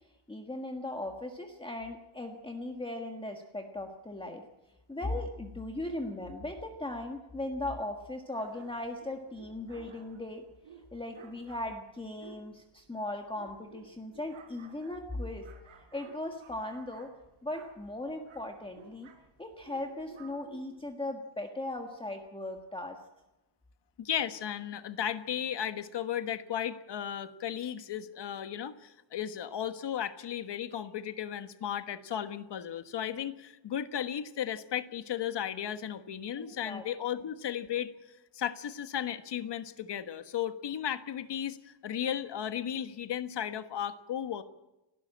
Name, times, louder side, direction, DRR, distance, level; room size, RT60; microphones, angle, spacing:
voice 1, 0.3-4.4 4.9-10.4 10.9-15.5 15.9-17.1 17.4-19.1 19.4-23.0 36.4-36.8, left 1 dB, 10° left, 3 dB, 1.5 m, -38 dB
sound 1, 8.3-20.9, right 5 dB, 90° right, 4.8 m, -55 dB
voice 2, 24.0-37.9 38.3-44.4, left 9 dB, 60° left, 10 dB, 1.4 m, -35 dB
30.0 x 12.5 x 8.7 m, 1.0 s
wide cardioid pair, 170°, 47 cm